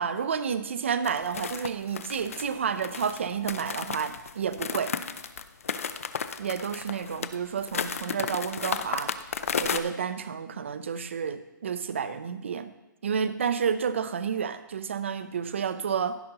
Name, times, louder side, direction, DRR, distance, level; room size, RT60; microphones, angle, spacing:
voice 1, 0.0-5.0 6.4-9.1 9.6-12.7 13.0-16.2, right 7 dB, 35° right, 13 dB, 0.5 m, -30 dB
sound 1, 1.0-9.8, left 6 dB, 40° left, 0.5 m, -33 dB
15.5 x 7.7 x 2.9 m, 0.97 s
hypercardioid pair, 175°, 11 cm